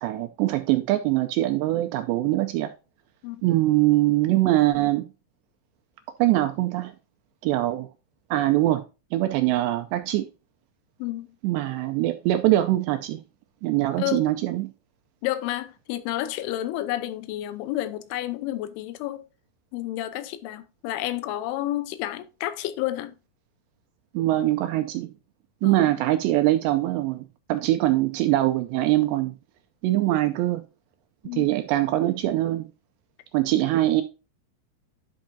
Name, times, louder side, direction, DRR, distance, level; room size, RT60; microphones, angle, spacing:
voice 1, 0.0-2.7 3.4-5.1 6.2-6.9 7.4-7.9 8.3-8.8 9.1-10.3 11.4-13.2 13.6-14.7 24.1-25.1 25.6-29.3 29.8-30.7 31.3-32.7 33.3-34.0, right 15 dB, 85° right, 2.5 m, -23 dB
voice 2, 11.0-11.3 14.0-14.3 15.2-19.3 19.7-23.1 25.6-25.9 31.2-31.5, left 14 dB, 85° left, 3.2 m, -30 dB
10.5 x 6.3 x 2.7 m
omnidirectional pair, 5.4 m